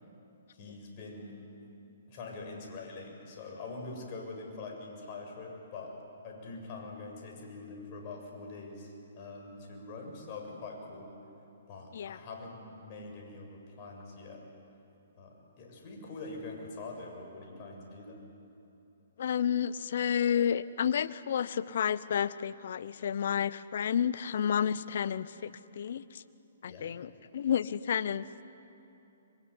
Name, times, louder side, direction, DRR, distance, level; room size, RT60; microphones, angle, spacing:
voice 1, 0.5-1.5 2.1-6.0 6.2-11.2 11.7-14.4 15.2-18.2 26.6-26.9, left 3 dB, 40° left, 1 dB, 7.3 m, -44 dB
voice 2, 19.2-26.2 26.6-28.3, left 8 dB, 60° left, 16 dB, 0.9 m, -31 dB
25.0 x 23.0 x 9.8 m, 2.8 s
hypercardioid pair, 130°, 0 cm